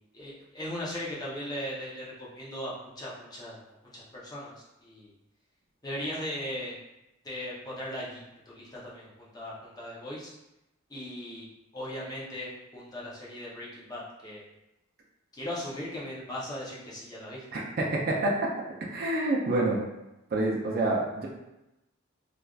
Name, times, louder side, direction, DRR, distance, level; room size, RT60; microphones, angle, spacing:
voice 1, 0.1-3.6 3.9-4.5 4.8-5.1 5.8-6.8 7.2-10.3 10.9-11.5 11.7-14.4 15.3-17.4, left 1 dB, 20° left, -7 dB, 0.7 m, -38 dB
voice 2, 17.5-18.3 18.9-19.8 20.3-21.3, right 2 dB, 45° right, -2 dB, 0.4 m, -27 dB
3.2 x 2.4 x 2.3 m, 0.93 s
head